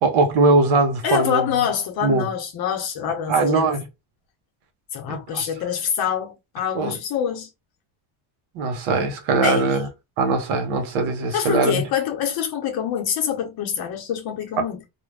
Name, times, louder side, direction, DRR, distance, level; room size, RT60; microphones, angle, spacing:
voice 1, 0.0-1.6 2.0-2.3 3.3-3.9 5.1-5.4 6.7-7.0 8.5-9.9 10.2-11.8 14.6-14.7, right 3 dB, 80° right, 1.0 m, -21 dB
voice 2, 1.0-3.8 4.9-7.5 9.4-9.8 11.3-14.8, left 8 dB, 50° left, 0.8 m, -25 dB
2.5 x 2.2 x 3.2 m
cardioid pair, 155°, 48 cm